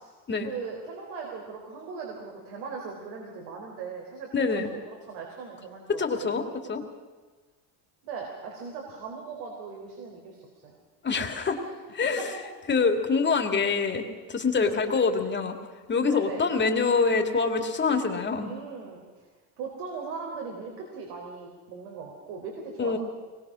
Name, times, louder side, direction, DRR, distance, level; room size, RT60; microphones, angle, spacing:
voice 1, 0.4-6.3 8.0-10.8 11.6-11.7 12.2-12.3 14.6-14.8 16.0-16.5 18.4-19.3 19.6-23.0, right 5 dB, 80° right, 0 dB, 4.4 m, -39 dB
voice 2, 4.3-4.7 6.0-6.8 11.0-11.6 11.9-12.3 12.7-15.6 15.9-18.5 22.8-23.0, left 4 dB, 25° left, 4 dB, 2.5 m, -25 dB
24.0 x 21.0 x 6.3 m, 1.3 s
cardioid pair, 125°, 44 cm